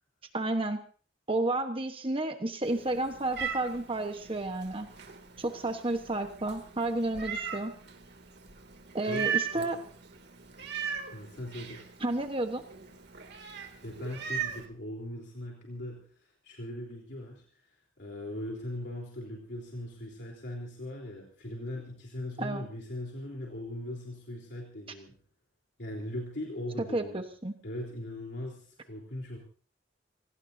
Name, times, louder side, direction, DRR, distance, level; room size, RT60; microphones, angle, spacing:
voice 1, 0.3-0.8 1.3-4.9 5.4-7.7 8.9-9.8 12.0-12.6 22.4-22.7 26.9-27.5, right 2 dB, 30° right, 6 dB, 1.2 m, -31 dB
Meow, 2.6-14.7, right 7 dB, 60° right, 2.6 m, -39 dB
voice 2, 9.0-9.7 11.1-11.8 13.8-25.2 25.8-27.2 27.6-29.4, left 1 dB, 65° left, -1 dB, 3.7 m, -40 dB
26.5 x 18.0 x 2.8 m, 0.43 s
head